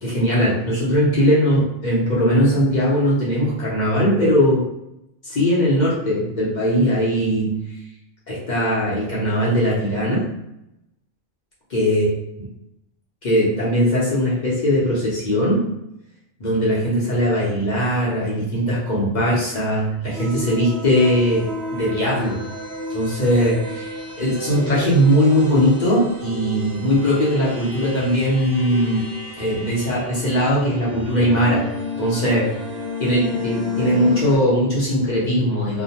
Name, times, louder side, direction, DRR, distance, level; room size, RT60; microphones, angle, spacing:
voice 1, 0.0-4.7 5.2-7.7 8.3-10.4 11.7-12.1 13.2-15.7 16.4-22.4 22.9-29.0 29.4-31.7 32.0-32.6 33.0-35.8, equal, 45° left, -6 dB, 0.8 m, -20 dB
sound 1, 20.1-34.4, left 2 dB, 65° right, 0.9 m, -32 dB
2.8 x 2.1 x 2.8 m, 0.84 s
omnidirectional pair, 1.2 m